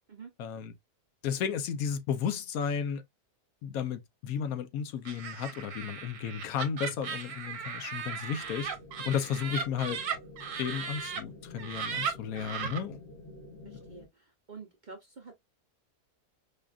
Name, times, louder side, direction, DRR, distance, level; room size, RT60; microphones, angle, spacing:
voice 1, 0.4-0.7 1.2-3.0 3.6-8.7 9.0-10.0 10.6-13.0, left 7 dB, 75° left, 1.0 m, -33 dB
Laughter, 5.0-11.2 11.6-12.8, right 6 dB, 60° right, 1.2 m, -37 dB
sound 1, 8.4-14.1, left 2 dB, 45° left, 0.9 m, -50 dB
voice 2, 13.6-15.4, right 4 dB, 45° right, 0.6 m, -48 dB
4.9 x 2.4 x 2.3 m
omnidirectional pair, 1.6 m